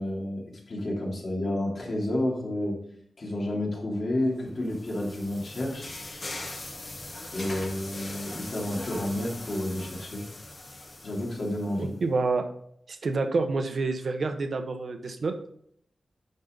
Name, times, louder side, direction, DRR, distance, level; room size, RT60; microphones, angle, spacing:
voice 1, 0.0-2.8 3.2-5.9 7.3-10.2 11.0-11.9, left 1 dB, 50° left, -3 dB, 3.1 m, -30 dB
sound 1, 4.3-11.9, left 2 dB, 35° left, 1.4 m, -41 dB
voice 2, 11.8-12.5 12.9-15.3, right 3 dB, 60° right, 6 dB, 1.0 m, -28 dB
11.0 x 5.3 x 4.0 m, 0.69 s
wide cardioid pair, 165°, 0 cm